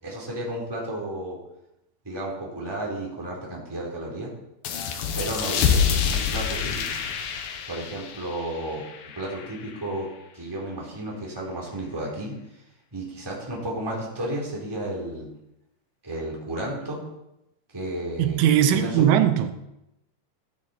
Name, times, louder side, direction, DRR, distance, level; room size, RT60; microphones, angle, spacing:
voice 1, 0.0-1.4 2.0-4.3 5.1-7.0 7.7-8.9 9.1-10.1 10.3-12.6 12.9-15.3 16.0-17.0 17.7-18.4 18.7-19.0, right 1 dB, 5° right, -4 dB, 2.8 m, -32 dB
sound 1, 4.6-9.9, left 7 dB, 70° left, 2.2 m, -27 dB
voice 2, 18.2-19.6, right 10 dB, 90° right, 9 dB, 3.4 m, -20 dB
15.5 x 9.5 x 4.4 m, 0.87 s
omnidirectional pair, 5.4 m